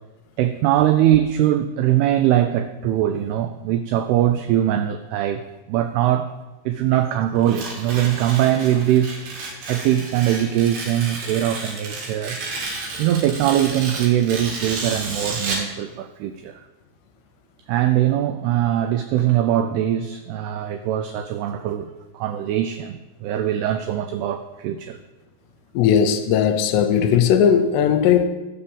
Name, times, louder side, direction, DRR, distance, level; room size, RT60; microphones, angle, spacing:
voice 1, 0.4-5.4 5.7-6.3 6.7-9.2 9.7-12.4 13.0-16.6 17.7-25.0, right 12 dB, 90° right, 2.3 m, -21 dB
Tearing, 7.4-15.7, right 3 dB, 70° right, 3.7 m, -32 dB
voice 2, 25.8-28.3, left 8 dB, 80° left, 2.6 m, -17 dB
12.5 x 4.3 x 7.0 m
omnidirectional pair, 5.1 m